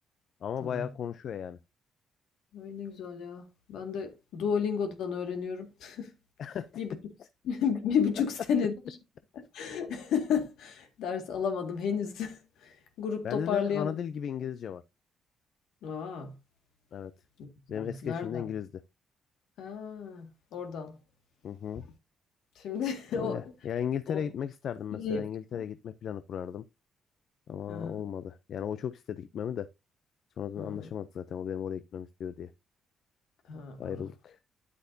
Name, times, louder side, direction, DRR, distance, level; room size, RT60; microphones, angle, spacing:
voice 1, 0.4-1.6 6.4-6.7 13.2-14.8 16.9-17.1 17.7-18.7 21.4-21.8 23.1-26.6 27.5-29.7 30.4-32.5 33.8-34.4, left 8 dB, 65° left, 0.5 m, -35 dB
voice 2, 2.5-6.1 6.8-7.1 7.4-9.0 9.3-14.0 15.8-16.4 17.4-17.5 17.7-18.5 19.6-21.0 22.6-23.5 24.1-24.2 24.9-25.3 25.5-25.6 27.7-28.0 30.6-30.9 33.5-34.0, left 7 dB, 80° left, 1.9 m, -33 dB
9.8 x 8.1 x 2.7 m
cardioid pair, 90°, 0 cm